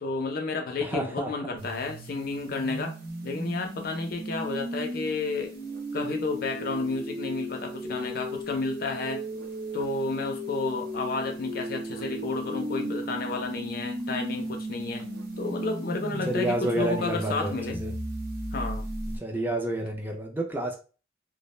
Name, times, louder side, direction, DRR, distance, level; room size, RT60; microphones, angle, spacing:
voice 1, 0.0-3.0 3.2-5.5 5.9-9.2 9.7-15.0 15.4-17.8 18.5-18.9, left 3 dB, 50° left, 0.4 m, -31 dB
voice 2, 0.8-1.6 16.2-17.9 19.2-20.8, right 1 dB, 10° right, 0.4 m, -30 dB
sound 1, 1.6-19.2, right 1 dB, 55° right, 0.7 m, -36 dB
2.3 x 2.1 x 3.0 m
head